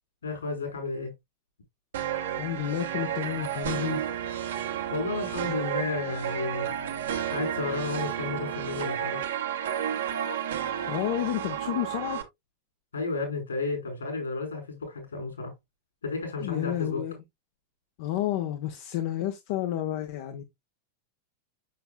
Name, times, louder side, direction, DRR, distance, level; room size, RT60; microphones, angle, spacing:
voice 1, 0.2-1.1 4.6-6.7 7.3-9.2 12.9-15.5 16.0-17.0, left 3 dB, 70° left, 4.4 m, -32 dB
sound 1, 1.9-12.2, right 9 dB, 60° right, 1.5 m, -32 dB
voice 2, 2.4-4.0 10.9-12.2 16.4-17.2 18.0-20.4, left 12 dB, 50° left, 0.9 m, -30 dB
6.7 x 6.7 x 2.3 m
figure-of-eight pair, 90°, 0 cm